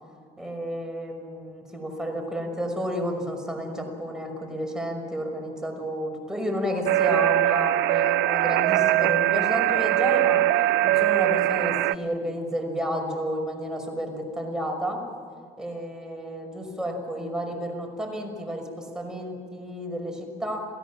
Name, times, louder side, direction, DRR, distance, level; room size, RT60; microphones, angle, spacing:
voice 1, 0.4-10.5 10.8-15.0 15.6-20.6, equal, 5° right, 2 dB, 5.9 m, -31 dB
sound 1, 6.9-12.0, right 15 dB, 80° right, 0.6 m, -22 dB
28.5 x 16.5 x 7.5 m, 2.3 s
cardioid pair, 110°, 17 cm